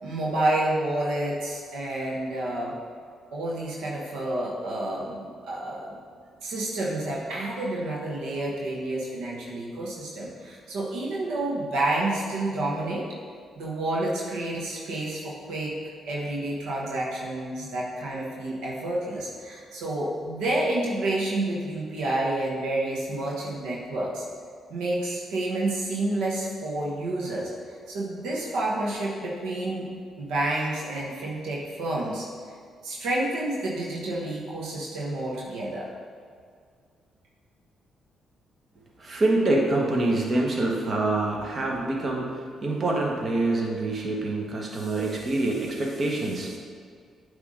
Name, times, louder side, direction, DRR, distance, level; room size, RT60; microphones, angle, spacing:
voice 1, 0.0-2.8 3.3-6.0 6.4-13.1 13.6-15.7 16.0-24.2 24.7-27.5 27.9-29.9 30.2-32.3 32.8-35.9, right 1 dB, 80° right, -4 dB, 1.2 m, -29 dB
voice 2, 39.0-46.6, right 2 dB, 45° right, -1 dB, 1.3 m, -26 dB
8.2 x 3.5 x 5.0 m, 2.1 s
supercardioid pair, 60°, 0 cm